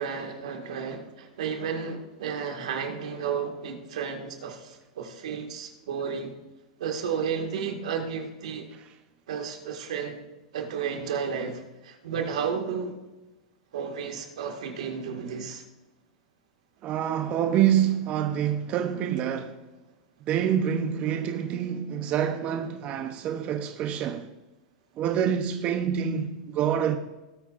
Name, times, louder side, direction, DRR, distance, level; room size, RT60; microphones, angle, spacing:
voice 1, 0.0-6.4 6.8-8.7 9.3-10.2 10.5-12.9 13.7-15.6, right 6 dB, 80° right, 1.9 m, -32 dB
voice 2, 16.8-19.7 20.2-24.3 25.0-27.0, right 9 dB, 40° right, 0.8 m, -26 dB
18.5 x 8.4 x 2.5 m
hypercardioid pair, 130°, 4 cm